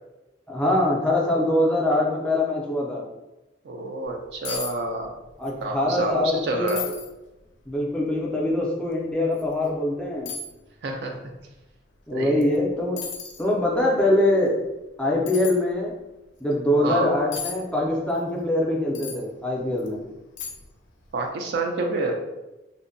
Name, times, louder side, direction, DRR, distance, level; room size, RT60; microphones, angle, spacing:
voice 1, 0.5-3.0 5.4-6.9 7.7-10.3 12.1-13.0 13.4-14.6 15.0-15.9 16.4-20.0, left 1 dB, 5° left, -3 dB, 0.4 m, -23 dB
voice 2, 3.6-5.1 5.6-6.9 10.8-11.2 12.1-12.5 16.8-17.1 21.1-22.2, right 2 dB, 60° right, 3 dB, 0.4 m, -28 dB
sound 1, 4.1-4.2 4.4-4.7 5.0-5.6 5.9-6.0 6.7-7.1 7.7-7.8 9.3-9.5 10.3-10.5 12.4-12.6 13.0-13.5 15.3-15.6 17.3-17.6 18.9-19.2 19.8-19.9 20.4-20.8 21.1-21.2, left 6 dB, 85° left, 0.4 m, -34 dB
2.6 x 2.1 x 2.6 m, 1.0 s
head